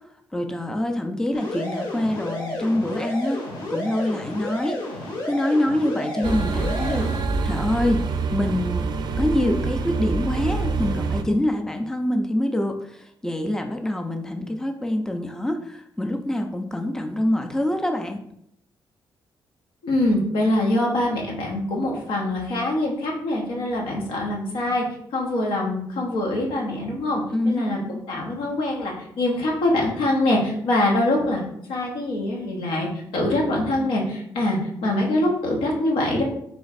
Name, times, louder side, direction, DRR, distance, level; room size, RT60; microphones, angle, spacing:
voice 1, 0.3-3.4 3.7-4.8 5.2-7.1 7.4-8.0 8.3-8.9 9.2-18.2 27.3-27.8, left 1 dB, 5° left, 5 dB, 0.5 m, -25 dB
sound 1, 1.3-7.2, left 1 dB, 65° left, 1.3 m, -31 dB
sound 2, 6.2-11.2, right 4 dB, 55° right, 0.4 m, -26 dB
voice 2, 19.8-24.8 25.1-31.4 31.7-32.9 33.1-36.2, left 1 dB, 85° left, -1 dB, 1.0 m, -24 dB
3.2 x 2.4 x 4.0 m, 0.71 s
cardioid pair, 65°, 8 cm